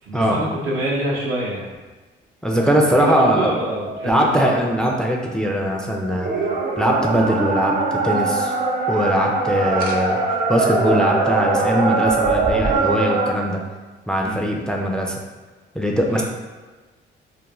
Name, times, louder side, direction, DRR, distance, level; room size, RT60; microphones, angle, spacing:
voice 1, 0.0-1.7 3.0-4.5 6.5-6.6 9.4-9.6 14.2-14.4 16.1-16.2, right 1 dB, 85° right, -5 dB, 0.8 m, -26 dB
voice 2, 2.4-3.5 4.0-6.3 6.8-8.5 8.9-10.2 10.5-13.6 14.1-15.2 15.8-16.2, equal, 5° left, 0 dB, 0.3 m, -20 dB
sound 1, 2.5-5.5 5.9-13.3, right 3 dB, 45° right, 0.5 m, -22 dB
2.4 x 2.1 x 3.0 m, 1.3 s
cardioid pair, 90°, 20 cm